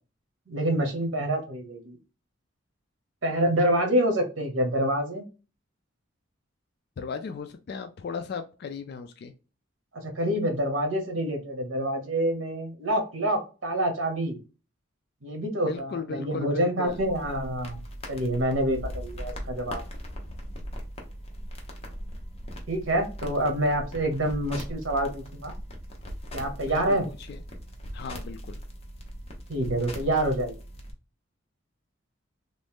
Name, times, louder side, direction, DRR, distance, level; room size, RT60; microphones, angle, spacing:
voice 1, 0.5-2.0 3.2-5.2 10.0-14.4 15.2-19.8 22.7-25.5 26.3-27.0 29.5-30.6, right 1 dB, 85° right, 4 dB, 1.0 m, -27 dB
voice 2, 7.0-9.3 15.6-17.0 26.6-27.4 27.9-28.6, left 5 dB, 55° left, 8 dB, 0.3 m, -36 dB
sound 1, 16.9-30.9, equal, 30° left, 0.7 m, -39 dB
3.0 x 2.6 x 3.4 m, 0.33 s
head